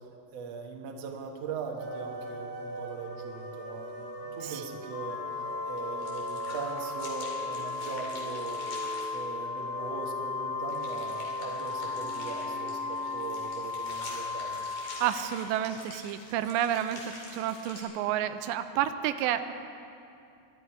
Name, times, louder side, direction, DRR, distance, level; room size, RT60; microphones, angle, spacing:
voice 1, 0.3-14.7, right 5 dB, 60° right, 1 dB, 1.7 m, -40 dB
sound 1, 1.8-13.4, right 2 dB, 25° right, 1.4 m, -41 dB
Organ, 4.9-15.7, left 5 dB, 85° left, 2.7 m, -36 dB
sound 2, 5.8-9.1 10.7-17.8, left 2 dB, 45° left, 3.5 m, -46 dB
voice 2, 15.0-17.0 17.3-19.5, right 11 dB, 90° right, 10 dB, 2.8 m, -30 dB
23.5 x 11.5 x 4.7 m, 2.6 s
omnidirectional pair, 4.9 m